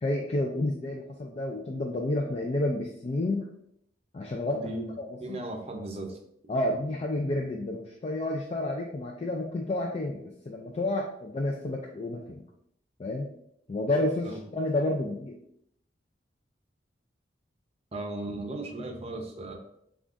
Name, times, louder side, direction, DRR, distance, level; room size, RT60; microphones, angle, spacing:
voice 1, 0.0-3.4 4.1-4.6 5.0-5.4 6.5-12.4 13.0-13.3 13.7-15.3, left 1 dB, 35° left, 1 dB, 0.4 m, -30 dB
voice 2, 4.5-4.9 5.2-6.2 14.2-14.4 17.9-19.5, right 2 dB, 35° right, 2 dB, 0.7 m, -36 dB
7.1 x 2.4 x 2.5 m, 0.74 s
head